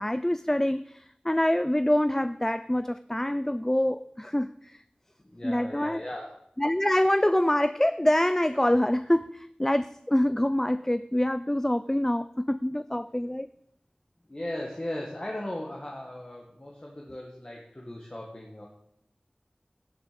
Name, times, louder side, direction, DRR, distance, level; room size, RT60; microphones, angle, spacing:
voice 1, 0.0-4.8 5.4-6.0 6.6-13.5, left 1 dB, 15° left, 13 dB, 0.4 m, -25 dB
voice 2, 5.2-6.4 14.3-18.7, left 1 dB, 35° left, -1 dB, 1.7 m, -37 dB
16.0 x 7.0 x 5.1 m, 0.77 s
wide cardioid pair, 50°, 3 cm